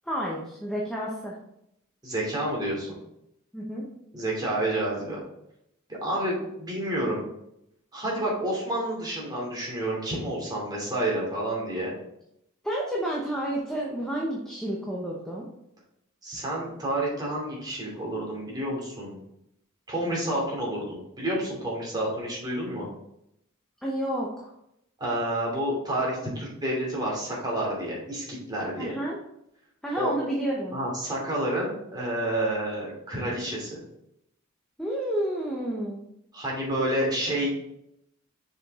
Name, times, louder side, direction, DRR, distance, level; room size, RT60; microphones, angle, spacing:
voice 1, 0.1-1.3 3.5-3.8 12.6-15.4 23.8-24.5 28.8-29.2 29.8-30.8 34.8-36.0, right 1 dB, 5° left, -4 dB, 1.0 m, -30 dB
voice 2, 2.0-3.0 4.1-5.2 6.0-7.2 7.9-11.9 16.2-19.2 19.9-22.9 25.0-28.9 30.0-30.2 30.7-33.8 36.3-37.5, right 1 dB, 20° right, -4 dB, 2.8 m, -29 dB
6.6 x 5.3 x 3.7 m, 0.79 s
head